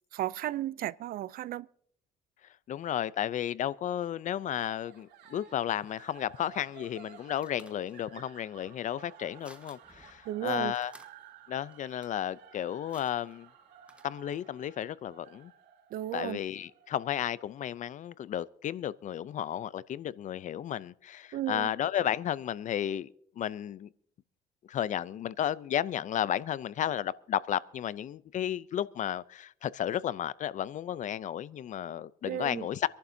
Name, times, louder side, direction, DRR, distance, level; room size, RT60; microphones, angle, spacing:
voice 1, 0.1-1.7 10.3-10.7 15.9-16.4 21.3-21.7 32.2-32.7, right 13 dB, 60° right, 0.4 m, -34 dB
voice 2, 2.7-10.9 11.5-13.5 14.0-15.5 16.1-23.1 23.4-23.9 24.7-32.9, left 10 dB, 50° left, 0.5 m, -33 dB
sound 1, 4.7-17.8, right 9 dB, 80° right, 3.9 m, -55 dB
sound 2, 7.1-14.5, right 1 dB, 5° right, 1.3 m, -60 dB
26.0 x 11.5 x 2.7 m
cardioid pair, 110°, 17 cm